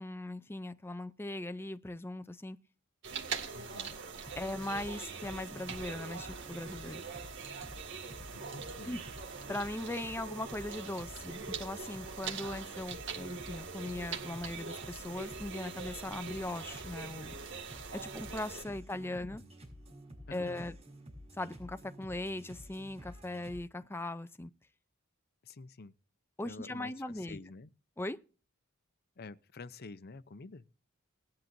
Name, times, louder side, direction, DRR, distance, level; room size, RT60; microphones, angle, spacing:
voice 1, 0.0-2.6 4.4-7.0 8.8-9.0 9.5-17.4 17.9-19.4 20.3-20.8 21.3-24.5 26.4-27.4 28.0-28.2, left 1 dB, 10° left, 0.5 m, -39 dB
sound 1, 3.0-18.6, right 5 dB, 60° right, 2.1 m, -43 dB
voice 2, 3.5-4.0 8.3-9.0 18.9-19.5 20.3-20.7 25.4-25.9 26.4-27.7 29.2-30.6, left 3 dB, 50° left, 0.7 m, -49 dB
sound 2, 4.2-23.6, equal, 30° right, 5.1 m, -51 dB
19.5 x 10.5 x 2.6 m
head